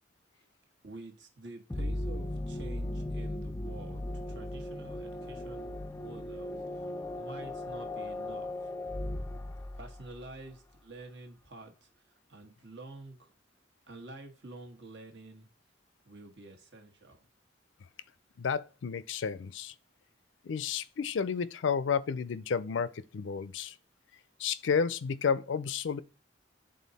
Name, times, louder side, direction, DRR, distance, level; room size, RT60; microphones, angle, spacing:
voice 1, 0.8-6.9 7.2-8.7 9.7-11.9 12.3-13.3 13.9-15.5 16.0-17.2, right 2 dB, 65° right, 1.3 m, -48 dB
sound 1, 1.7-10.3, left 1 dB, 15° left, 0.3 m, -37 dB
voice 2, 18.4-19.7 20.4-23.7 24.4-26.0, left 6 dB, 80° left, 0.4 m, -31 dB
8.3 x 3.9 x 4.1 m
head